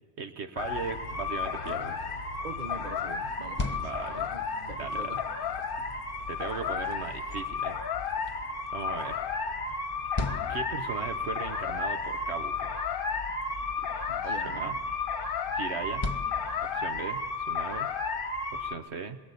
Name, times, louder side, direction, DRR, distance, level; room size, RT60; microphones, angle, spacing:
voice 1, 0.2-2.0 3.8-4.3 4.8-5.1 6.3-7.8 8.7-9.2 10.5-12.8 14.4-14.7 15.5-16.1 16.6-17.9 18.5-19.2, right 5 dB, 70° right, 8 dB, 1.2 m, -38 dB
sound 1, 0.6-18.7, left 4 dB, 50° left, 1.1 m, -33 dB
sound 2, 1.1-1.4 3.6-4.2 5.8-6.1 8.2-8.7, equal, 90° right, 5.5 m, -54 dB
voice 2, 2.4-5.2 14.1-14.8, right 4 dB, 45° right, 9 dB, 1.0 m, -43 dB
sound 3, 3.3-17.2, left 3 dB, 25° left, 1.2 m, -41 dB
25.5 x 22.5 x 8.3 m, 1.4 s
omnidirectional pair, 1.2 m